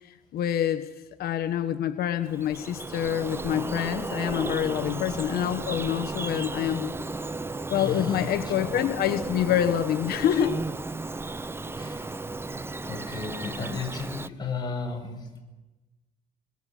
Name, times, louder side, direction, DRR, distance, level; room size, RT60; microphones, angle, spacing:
voice 1, 0.3-0.9 1.2-6.9 7.7-10.6, left 10 dB, 65° left, 9 dB, 1.3 m, -26 dB
Bird vocalization bird call bird song, 2.2-14.3, right 3 dB, 15° right, 0.8 m, -34 dB
voice 2, 7.8-8.8 11.7-12.2 12.8-15.4, left 4 dB, 25° left, 0 dB, 7.6 m, -35 dB
26.5 x 23.0 x 7.8 m, 1.1 s
cardioid pair, 110°, 17 cm